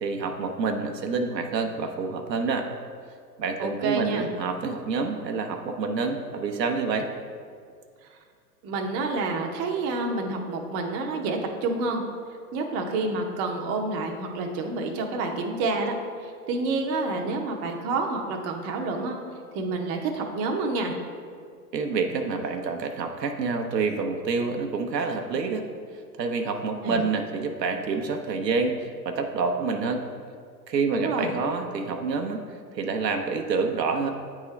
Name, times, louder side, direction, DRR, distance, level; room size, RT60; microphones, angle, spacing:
voice 1, 0.0-2.7 3.4-7.1 21.7-25.6 26.2-30.0 30.7-32.4 32.7-34.1, right 4 dB, 90° right, 4 dB, 0.8 m, -27 dB
voice 2, 3.6-4.3 8.6-12.0 12.5-15.9 16.2-19.2 19.5-20.9 26.8-27.0 30.9-31.3, right 3 dB, 30° right, 2 dB, 0.7 m, -28 dB
8.7 x 3.6 x 3.2 m, 2.1 s
hypercardioid pair, 115°, 48 cm